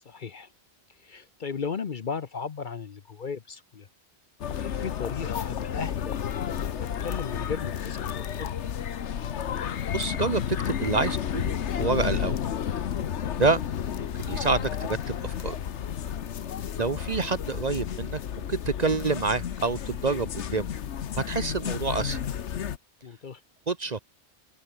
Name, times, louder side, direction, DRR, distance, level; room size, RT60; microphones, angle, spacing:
voice 1, 0.0-0.5 1.0-3.9 4.5-6.2 6.7-8.5 23.0-23.4, left 5 dB, 45° left, 0.9 m, -36 dB
sound 1, 4.4-22.8, left 9 dB, 75° left, 1.2 m, -32 dB
voice 2, 9.9-12.4 13.4-13.6 13.9-15.6 16.8-18.2 18.5-20.7 21.1-22.2 23.7-24.0, right 4 dB, 40° right, 0.9 m, -27 dB
open air
omnidirectional pair, 1.2 m